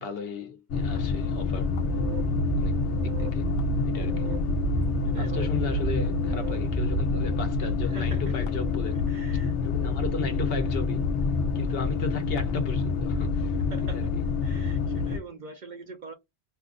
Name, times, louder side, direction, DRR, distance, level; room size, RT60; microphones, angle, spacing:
voice 1, 0.0-1.7 2.6-2.8 3.0-3.5 3.9-4.4 5.2-9.0 9.6-11.0 11.5-13.6 13.9-14.1, left 4 dB, 60° left, 1.0 m, -35 dB
sound 1, 0.7-15.2, left 4 dB, 90° left, 0.9 m, -27 dB
sound 2, 1.8-7.4, right 11 dB, 90° right, 1.0 m, -32 dB
voice 2, 5.0-5.5 7.8-8.4 8.9-9.5 13.5-14.0 14.4-16.1, right 4 dB, 55° right, 0.6 m, -43 dB
2.7 x 2.4 x 3.5 m
omnidirectional pair, 1.1 m